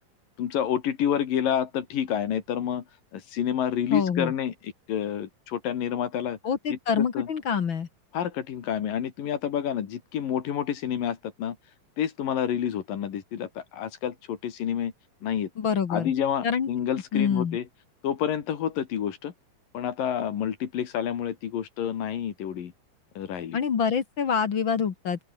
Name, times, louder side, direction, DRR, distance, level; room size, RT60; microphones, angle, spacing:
voice 1, 0.4-2.8 3.1-6.4 6.7-7.3 8.1-11.6 12.0-14.9 15.2-15.5 15.9-17.6 18.0-19.3 19.7-22.7 23.2-23.6, left 9 dB, 75° left, 3.8 m, -29 dB
voice 2, 3.9-4.3 6.4-7.9 15.6-16.1 16.4-16.7 17.1-17.6 23.5-25.2, left 7 dB, 45° left, 1.7 m, -26 dB
open air
omnidirectional pair, 4.1 m